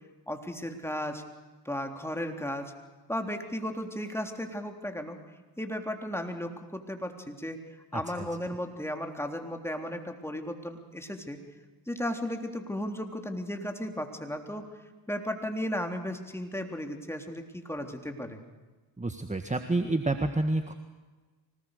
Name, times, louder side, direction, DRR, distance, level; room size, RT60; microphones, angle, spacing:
voice 1, 0.3-1.2 1.7-2.7 3.1-5.2 5.6-7.6 7.9-11.4 11.9-14.6 15.1-18.4, equal, 5° left, 4 dB, 3.5 m, -35 dB
voice 2, 19.0-20.7, right 2 dB, 15° right, 7 dB, 1.7 m, -28 dB
25.0 x 19.0 x 6.7 m, 1.3 s
supercardioid pair, 60°, 48 cm